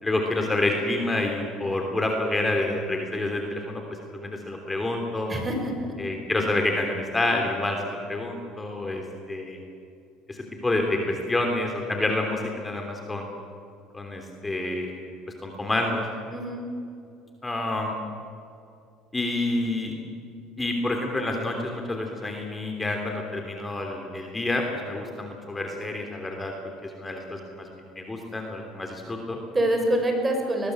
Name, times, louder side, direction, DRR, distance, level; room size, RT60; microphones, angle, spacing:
voice 1, 0.0-3.8 4.1-5.4 6.0-9.6 10.3-10.4 10.6-13.3 13.9-15.0 15.4-16.1 17.4-17.9 19.1-20.0 20.6-29.4, left 2 dB, 15° left, 3 dB, 3.3 m, -28 dB
voice 2, 5.3-5.9 16.3-16.6 29.5-30.7, right 1 dB, 20° right, 3 dB, 5.9 m, -25 dB
22.0 x 19.5 x 8.0 m, 2.4 s
supercardioid pair, 95°, 0 cm